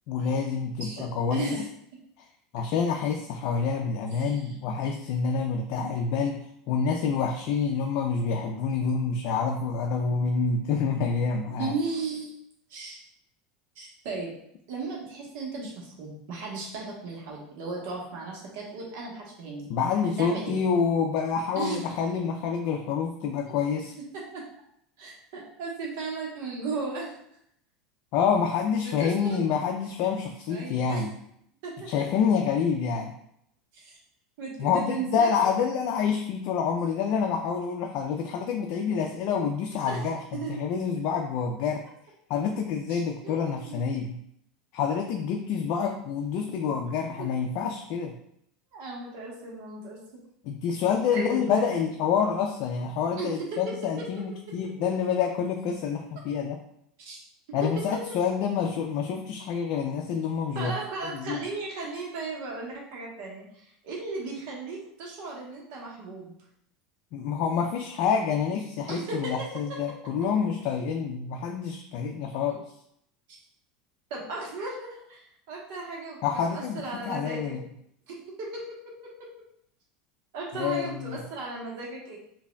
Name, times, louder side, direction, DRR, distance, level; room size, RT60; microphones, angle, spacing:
voice 1, 0.1-1.6 2.5-11.7 19.7-23.9 28.1-31.1 31.9-33.1 34.6-41.9 42.3-44.2 44.7-48.2 50.4-56.6 57.5-60.7 61.1-61.5 67.1-72.6 76.2-77.6 80.5-81.2, left 6 dB, 60° left, 2 dB, 0.4 m, -27 dB
voice 2, 0.8-1.7 4.1-4.5 11.5-12.3 12.7-13.0 13.8-14.3 14.7-19.7 20.2-20.6 21.5-21.8 23.5-23.6 24.1-24.4 25.0-27.1 28.8-29.4 30.5-31.1 31.6-32.1 33.7-33.9 34.4-35.5 39.9-40.0 40.3-40.6 42.9-43.8 47.2-47.3 48.7-50.0 51.1-51.8 53.2-53.7 57.0-57.2 57.6-57.7 60.5-66.3 68.9-69.5 72.5-72.6 74.1-75.2 75.5-77.6 78.1-78.6 79.2-79.3 80.3-82.2, right 3 dB, 70° right, -3 dB, 1.2 m, -36 dB
5.0 x 2.6 x 2.2 m, 0.72 s
supercardioid pair, 110°, 0 cm